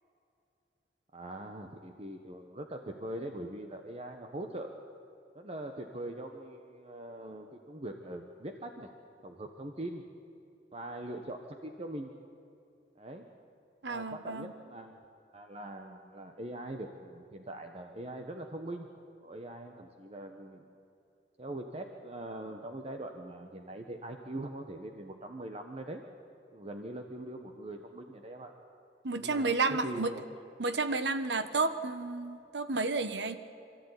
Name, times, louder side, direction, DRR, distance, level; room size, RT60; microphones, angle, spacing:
voice 1, 1.1-4.7 5.3-8.9 9.2-10.0 10.7-12.1 13.0-13.2 13.8-15.0 15.3-18.9 19.2-20.7 21.4-26.0 26.5-28.5 29.1-30.2, right 1 dB, 35° right, 4 dB, 1.2 m, -42 dB
voice 2, 13.8-14.5 29.0-30.1 30.6-33.3, right 3 dB, 80° right, 10 dB, 1.3 m, -31 dB
25.5 x 13.5 x 9.8 m, 2.6 s
head